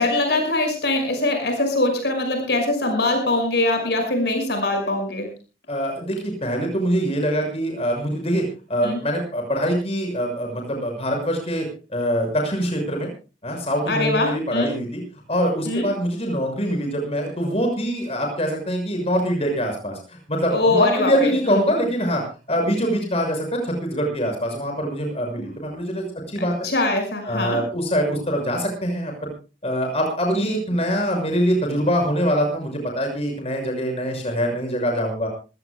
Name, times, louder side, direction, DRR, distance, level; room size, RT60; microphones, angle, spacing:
voice 1, 0.0-5.3 8.8-9.0 13.9-14.7 15.7-15.9 20.5-21.3 26.4-27.6, left 2 dB, 65° left, 4 dB, 6.0 m, -22 dB
voice 2, 5.7-13.1 13.4-15.0 15.3-22.2 22.5-26.5 27.2-29.3 29.6-35.3, equal, 35° left, 2 dB, 6.4 m, -24 dB
25.5 x 17.0 x 2.3 m, 0.32 s
head